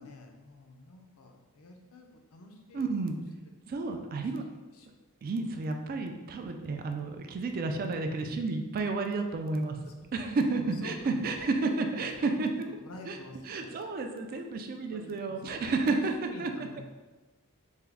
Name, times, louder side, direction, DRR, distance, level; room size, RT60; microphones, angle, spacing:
voice 1, 0.0-2.9 4.1-4.2 4.8-4.9 5.5-5.8 9.8-9.9 10.5-11.5 11.9-13.8 14.3-14.4 14.9-16.8, left 2 dB, 70° left, 3 dB, 0.5 m, -49 dB
voice 2, 2.7-3.2 3.7-4.4 5.2-9.8 10.1-12.7 13.1-13.2 13.4-16.5, right 3 dB, 40° right, 5 dB, 0.3 m, -31 dB
3.4 x 2.2 x 3.4 m, 1.2 s
head